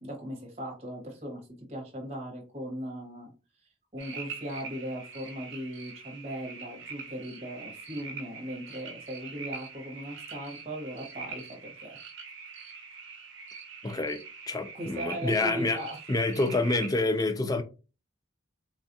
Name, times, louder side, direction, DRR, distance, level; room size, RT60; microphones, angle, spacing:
voice 1, 0.0-3.3 3.9-12.0 14.7-16.0, equal, 30° right, 1.1 m, -38 dB
sound 1, 4.0-16.9, right 5 dB, 55° right, 0.8 m, -44 dB
voice 2, 13.8-15.8 16.1-17.6, left 2 dB, 15° left, 0.3 m, -28 dB
3.4 x 2.4 x 2.6 m
head